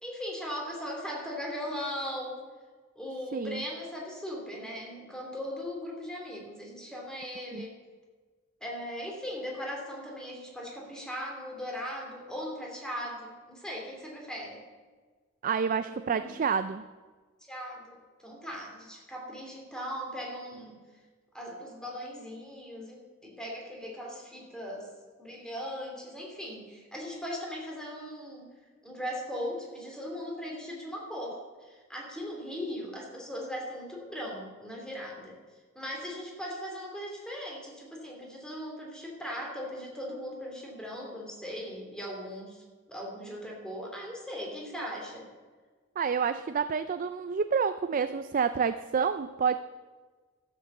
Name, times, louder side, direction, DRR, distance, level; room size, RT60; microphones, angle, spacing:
voice 1, 0.0-2.4 2.9-7.8 8.6-14.6 16.1-16.3 17.4-20.7 21.3-24.9 25.2-28.5 28.8-35.4 35.7-45.3, equal, 5° left, -1 dB, 2.7 m, -39 dB
voice 2, 3.3-3.6 7.5-7.7 15.4-16.8 46.0-49.6, right 6 dB, 40° right, 12 dB, 0.4 m, -28 dB
12.5 x 7.8 x 7.1 m, 1.4 s
head